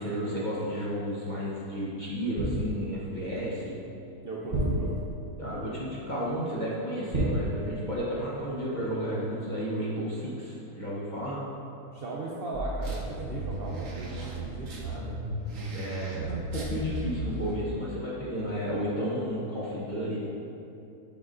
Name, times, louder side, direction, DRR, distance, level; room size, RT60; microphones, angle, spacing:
voice 1, 0.0-3.8 5.4-11.4 15.7-20.2, equal, 35° left, -7 dB, 0.8 m, -32 dB
sound 1, 2.4-3.1 4.5-5.5 7.1-8.2 8.5-8.7, right 1 dB, 35° right, 0.9 m, -31 dB
voice 2, 4.2-4.9 11.9-15.2, right 2 dB, 75° right, -4 dB, 0.5 m, -37 dB
sound 2, 12.5-17.5, right 2 dB, 60° right, 1.2 m, -35 dB
7.0 x 5.6 x 2.5 m, 2.8 s
omnidirectional pair, 1.7 m